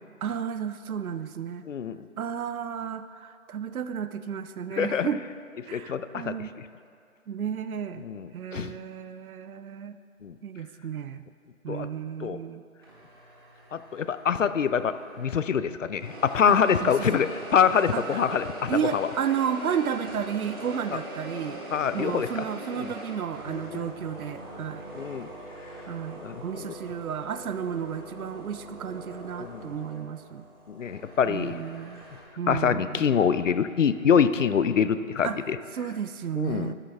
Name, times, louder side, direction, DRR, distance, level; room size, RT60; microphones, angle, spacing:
voice 1, 0.2-1.6 2.2-5.2 5.7-6.5 7.3-8.0 8.3-9.9 10.4-11.2 11.6-12.6 16.5-16.6 16.8-17.3 17.9-18.4 18.7-21.6 21.9-24.9 25.9-30.5 31.2-32.1 32.4-33.1 35.2-35.4 35.7-36.7, right 8 dB, 80° right, 12 dB, 0.6 m, -32 dB
voice 2, 1.7-2.0 4.8-5.1 5.7-6.3 8.0-8.7 10.2-10.3 11.7-11.9 12.2-12.4 13.7-19.1 21.7-22.3 22.8-22.9 23.5-23.9 24.9-25.3 26.2-26.4 29.4-29.7 30.7-31.6 32.5-35.6 36.4-36.7, left 7 dB, 60° left, 13 dB, 0.6 m, -25 dB
sound 1, 12.8-15.6 16.0-32.2, right 1 dB, 15° right, 1.0 m, -42 dB
13.0 x 9.9 x 3.5 m, 2.3 s
figure-of-eight pair, 155°, 42 cm